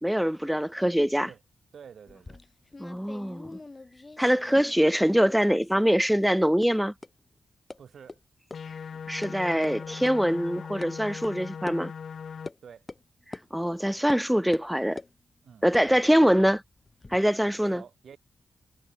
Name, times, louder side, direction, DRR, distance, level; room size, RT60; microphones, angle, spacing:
voice 1, 0.0-1.3 2.8-3.6 4.2-6.9 9.1-11.9 13.3-15.0 15.6-16.6 17.1-17.8, equal, ahead, 0.4 m, -24 dB
voice 2, 1.7-2.4 7.8-8.2 12.6-12.9 15.4-15.7 17.6-18.2, right 7 dB, 70° right, 7.6 m, -48 dB
sound 1, 2.1-4.9 5.1-5.9 6.2-6.3 6.6-6.7 7.0-7.1 7.7-7.8 8.1-8.2 8.5-8.6 8.9-9.3 9.6-9.7 10.1-10.2 10.8-10.9 11.2-11.3 11.7-11.8 12.5-12.6 12.9-13.0 13.3-13.5 14.1-14.2 14.5-15.1 15.6-17.2, left 3 dB, 25° left, 3.5 m, -43 dB
sound 2, 8.5-12.5, left 6 dB, 60° left, 3.7 m, -39 dB
wide cardioid pair, 115°, 0 cm